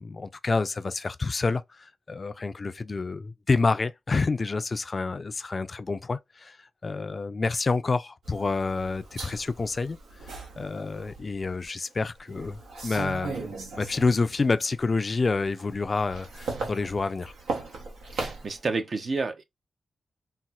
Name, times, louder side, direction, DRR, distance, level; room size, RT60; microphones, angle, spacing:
voice 1, 0.0-6.6 6.8-10.0 10.6-13.4 13.8-17.3, left 3 dB, 45° left, 0.3 m, -28 dB
sound 1, 8.2-11.7 12.2-14.4 14.8-18.6, right 3 dB, 90° right, 0.9 m, -38 dB
voice 2, 18.1-19.4, right 3 dB, 60° right, 0.6 m, -30 dB
4.1 x 2.0 x 2.3 m
supercardioid pair, 45°, 0 cm